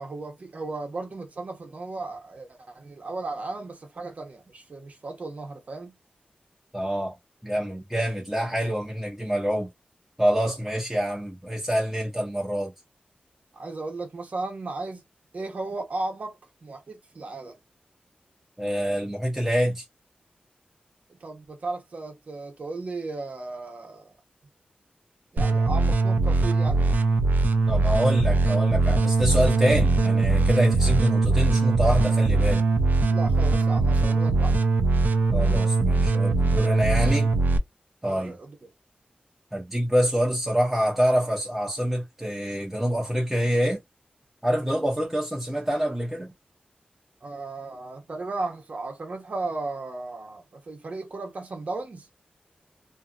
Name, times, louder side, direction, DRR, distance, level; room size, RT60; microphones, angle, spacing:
voice 1, 0.0-6.0 13.5-15.0 15.3-17.6 21.1-24.1 25.3-26.9 33.1-34.7 38.0-38.7 47.2-52.1, right 3 dB, 55° right, 0.9 m, -35 dB
voice 2, 6.7-7.2 7.4-9.7 10.2-12.7 18.6-19.8 27.7-32.7 35.3-37.3 38.0-38.3 39.5-43.8 44.4-46.3, equal, 10° right, 0.9 m, -26 dB
sound 1, 25.4-37.6, right 3 dB, 80° right, 0.4 m, -21 dB
2.7 x 2.5 x 2.4 m
wide cardioid pair, 105°, 3 cm